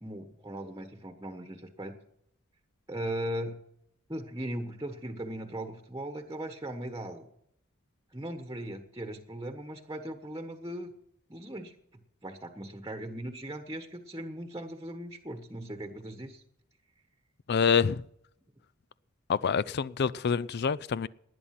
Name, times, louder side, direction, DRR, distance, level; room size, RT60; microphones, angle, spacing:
voice 1, 0.0-2.0 2.9-3.6 4.1-7.3 8.1-10.9 11.3-11.7 12.2-16.4, right 1 dB, 15° right, 1.2 m, -38 dB
voice 2, 17.5-18.0 19.3-21.1, left 6 dB, 50° left, 0.4 m, -26 dB
19.0 x 10.0 x 5.8 m
head